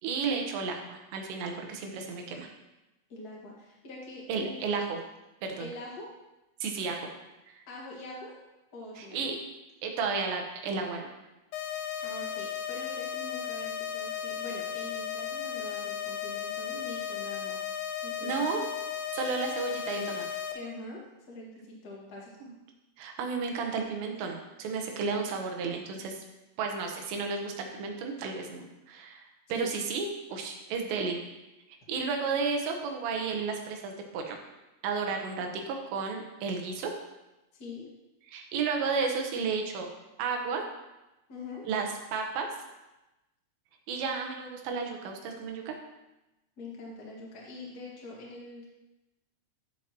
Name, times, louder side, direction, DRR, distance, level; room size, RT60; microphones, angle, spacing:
voice 1, 0.0-2.5 4.3-5.0 5.4-5.7 6.6-7.1 7.5-7.6 9.0-9.4 9.8-11.1 18.2-18.6 19.1-20.3 22.4-22.5 23.0-26.2 26.6-29.2 29.5-31.2 31.7-34.4 34.8-36.9 38.3-39.9 40.2-40.6 41.7-42.5 43.9-45.7, right 5 dB, 90° right, 3 dB, 3.3 m, -32 dB
voice 2, 3.1-4.6 5.6-6.1 7.7-8.3 8.7-9.3 11.7-17.6 18.0-18.5 20.5-21.0 21.3-22.3 29.5-29.7 37.5-37.8 41.3-41.6 46.6-48.7, left 2 dB, 55° left, -3 dB, 1.0 m, -44 dB
sound 1, 11.5-20.5, left 8 dB, 80° left, 2.2 m, -35 dB
12.0 x 7.4 x 3.0 m, 1.0 s
omnidirectional pair, 4.8 m